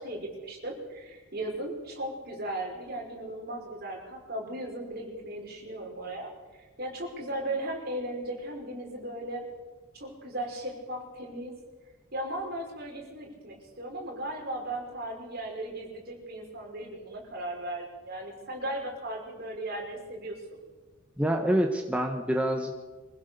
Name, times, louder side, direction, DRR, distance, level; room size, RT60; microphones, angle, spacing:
voice 1, 0.0-6.3 6.8-9.5 9.9-11.6 12.1-20.6, right 1 dB, 50° right, 0 dB, 5.1 m, -37 dB
voice 2, 21.2-22.7, equal, 5° right, 2 dB, 1.4 m, -26 dB
24.5 x 16.0 x 6.9 m, 1.3 s
head